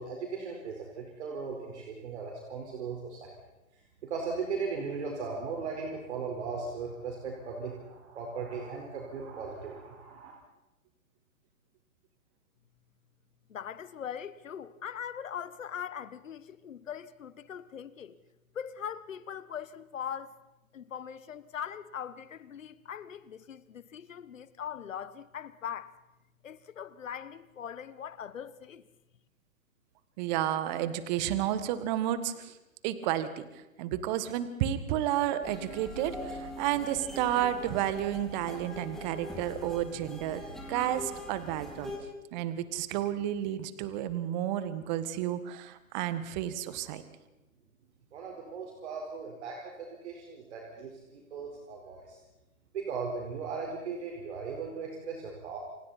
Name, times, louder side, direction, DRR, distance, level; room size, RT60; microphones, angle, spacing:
voice 1, 0.0-3.3 4.0-10.3 48.1-52.2 52.7-55.6, right 5 dB, 50° right, 4.7 m, -38 dB
voice 2, 13.5-18.2 18.5-20.4 20.7-26.0 26.4-28.8, left 8 dB, 65° left, 1.5 m, -41 dB
voice 3, 30.2-32.5 32.8-41.9 42.3-47.0, right 11 dB, 30° right, 1.7 m, -31 dB
sound 1, 35.4-42.0, left 1 dB, ahead, 4.9 m, -43 dB
29.5 x 25.0 x 4.3 m
figure-of-eight pair, 130°, 42 cm